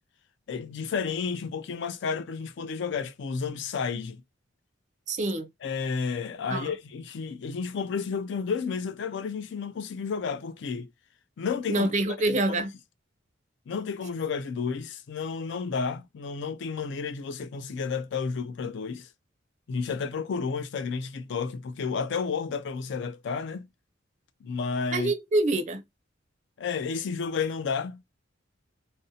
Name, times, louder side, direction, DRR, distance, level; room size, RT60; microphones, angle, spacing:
voice 1, 0.5-4.2 5.6-10.9 11.4-11.9 13.7-19.1 19.7-23.7 24.4-25.1 26.6-28.0, left 5 dB, 65° left, 0.4 m, -31 dB
voice 2, 5.1-5.5 6.5-6.7 11.7-12.7 24.9-25.8, right 2 dB, 40° right, 0.4 m, -26 dB
2.5 x 2.0 x 2.7 m
head